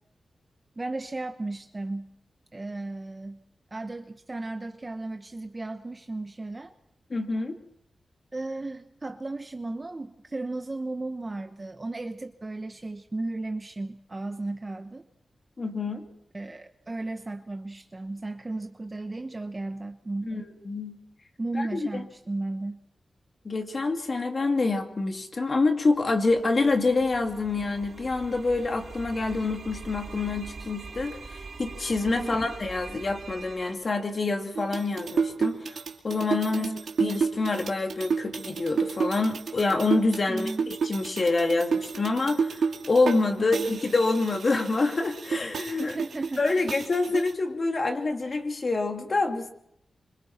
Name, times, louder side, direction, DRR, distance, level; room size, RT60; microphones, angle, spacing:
voice 1, 0.8-2.1 2.5-3.4 3.7-6.7 8.3-15.1 16.3-20.3 21.4-22.8 32.1-32.5 36.5-36.8 40.3-40.7 43.4-43.7 45.8-46.4, right 2 dB, 30° right, 7 dB, 1.1 m, -35 dB
voice 2, 7.1-7.5 15.6-16.0 20.3-21.0 21.6-22.0 23.4-35.8 36.0-36.7 37.0-45.9 46.4-49.5, left 3 dB, 50° left, 4 dB, 2.7 m, -26 dB
sound 1, 26.0-33.7, right 4 dB, 65° right, 2.1 m, -43 dB
sound 2, 34.6-43.2 43.5-47.3, right 5 dB, 90° right, 2.4 m, -30 dB
26.0 x 24.5 x 4.4 m, 0.75 s
wide cardioid pair, 80°, 0 cm